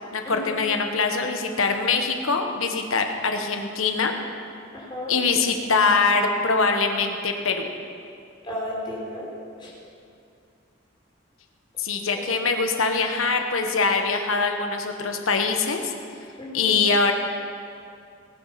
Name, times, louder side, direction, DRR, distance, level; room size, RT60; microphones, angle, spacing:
voice 1, 0.1-4.1 5.1-7.7 11.8-15.9 16.5-17.1, left 4 dB, 85° left, 4 dB, 1.4 m, -23 dB
voice 2, 4.7-5.2 8.4-9.3 9.6-9.7 12.1-12.3 16.4-16.8, left 1 dB, 25° left, -5 dB, 4.0 m, -33 dB
19.0 x 9.5 x 5.9 m, 2.5 s
head